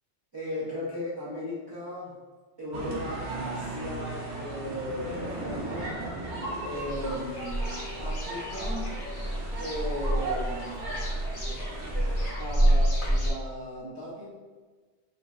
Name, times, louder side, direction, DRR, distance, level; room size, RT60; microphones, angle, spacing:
voice 1, 0.3-2.1 2.6-6.1 6.6-9.0 9.6-10.8 12.4-14.3, left 1 dB, 45° right, -8 dB, 0.3 m, -36 dB
sound 1, 2.7-12.3, right 2 dB, 85° right, 1.0 m, -37 dB
sound 2, 5.0-12.3, equal, 5° left, 1.2 m, -46 dB
sound 3, 6.7-13.3, right 1 dB, 55° left, 0.8 m, -28 dB
3.0 x 2.5 x 2.3 m, 1.4 s
omnidirectional pair, 1.1 m